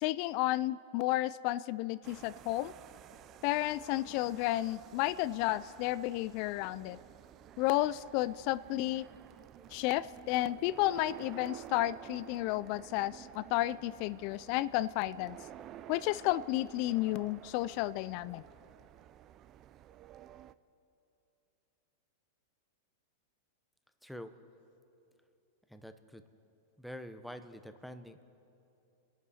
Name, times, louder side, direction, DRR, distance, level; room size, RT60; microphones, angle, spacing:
voice 1, 0.0-2.7 3.4-7.0 7.6-9.1 9.7-15.4 15.9-18.4, left 16 dB, 50° left, 18 dB, 0.3 m, -32 dB
sound 1, 2.0-20.5, right 12 dB, 35° right, 0.4 m, -52 dB
voice 2, 24.0-24.3 25.7-26.2 26.8-28.2, equal, ahead, 8 dB, 0.8 m, -46 dB
29.0 x 11.0 x 4.3 m, 2.8 s
hypercardioid pair, 135°, 0 cm